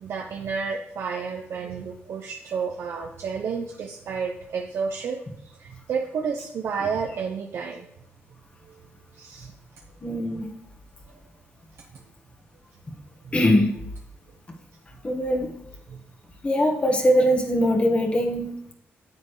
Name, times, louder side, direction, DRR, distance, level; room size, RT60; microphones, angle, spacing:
voice 1, 0.0-5.2 5.6-7.9 9.1-9.5 11.1-11.2 13.2-13.3 15.9-16.0, right 5 dB, 70° right, 2 dB, 0.8 m, -31 dB
voice 2, 10.0-10.5 13.3-13.7 15.0-15.6 16.4-18.5, equal, 25° left, 2 dB, 1.5 m, -21 dB
9.4 x 7.4 x 3.2 m, 0.78 s
cardioid pair, 95°, 5 cm